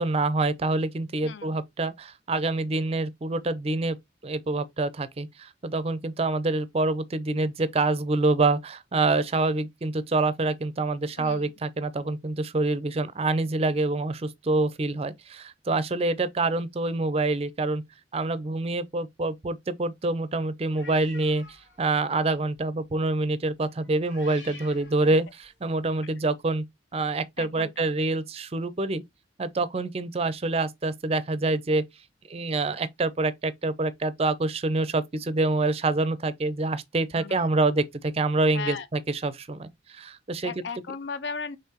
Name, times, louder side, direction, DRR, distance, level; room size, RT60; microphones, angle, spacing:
voice 1, 0.0-4.0 4.2-17.8 18.1-21.4 21.8-26.6 26.9-29.0 29.4-31.8 32.3-40.6, right 2 dB, 30° right, 0.5 m, -26 dB
voice 2, 1.2-1.6 11.2-11.5 25.0-25.1 27.4-27.7 37.2-37.5 38.5-38.9 40.4-41.6, left 5 dB, 65° left, 0.5 m, -36 dB
sound 1, 20.7-21.9 22.3-22.6 23.8-25.6, left 3 dB, 90° left, 2.1 m, -49 dB
5.6 x 3.2 x 2.9 m
head